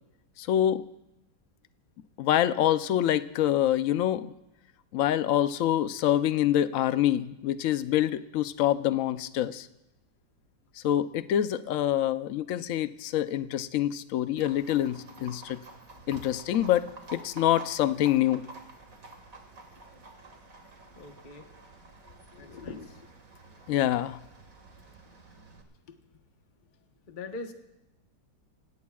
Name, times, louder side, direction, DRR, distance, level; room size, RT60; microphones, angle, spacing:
voice 1, 0.4-0.8 2.2-4.3 4.9-9.7 10.8-15.6 16.1-18.5 23.7-24.2, left 12 dB, 65° left, 12 dB, 0.8 m, -26 dB
Livestock farm animals working animals, 14.4-25.6, right 2 dB, 50° right, 2.2 m, -49 dB
voice 2, 21.0-21.4 22.4-22.9 27.1-27.5, left 3 dB, 30° left, 5 dB, 1.0 m, -41 dB
26.5 x 17.5 x 2.4 m, 0.92 s
omnidirectional pair, 2.0 m